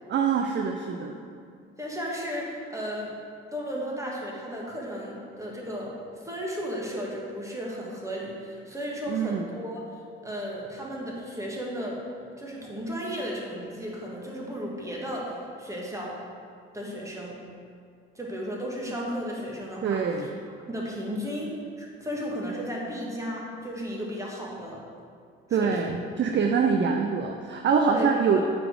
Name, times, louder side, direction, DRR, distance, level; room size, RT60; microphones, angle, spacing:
voice 1, 0.1-1.1 9.1-9.5 19.8-20.4 25.5-28.5, right 6 dB, 35° right, 3 dB, 0.6 m, -25 dB
voice 2, 1.8-3.1 3.5-9.9 10.2-12.0 12.4-16.2 16.7-17.4 18.1-20.3 20.7-24.8 25.5-25.9 27.8-28.1 28.4-28.5, equal, 10° right, -3 dB, 1.9 m, -34 dB
8.6 x 4.3 x 4.7 m, 2.3 s
hypercardioid pair, 50°, 32 cm